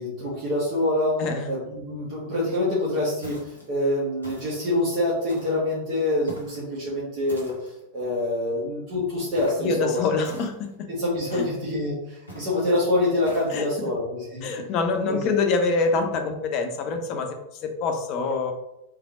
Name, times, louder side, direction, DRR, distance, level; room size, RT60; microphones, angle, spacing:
voice 1, 0.0-10.1 10.9-14.5 15.1-15.2, left 1 dB, 40° right, -7 dB, 1.4 m, -26 dB
sound 1, 3.2-3.7 4.2-4.7 5.3-5.7 6.3-6.7 7.3-7.8 9.4-9.7 10.2-10.7 11.3-11.7 12.3-12.6 13.3-13.6, right 1 dB, 90° right, 1.2 m, -44 dB
voice 2, 9.6-10.9 11.3-11.4 13.5-13.6 14.4-18.5, left 4 dB, 40° left, 5 dB, 0.7 m, -25 dB
3.5 x 3.3 x 3.7 m, 0.86 s
figure-of-eight pair, 90°, 0 cm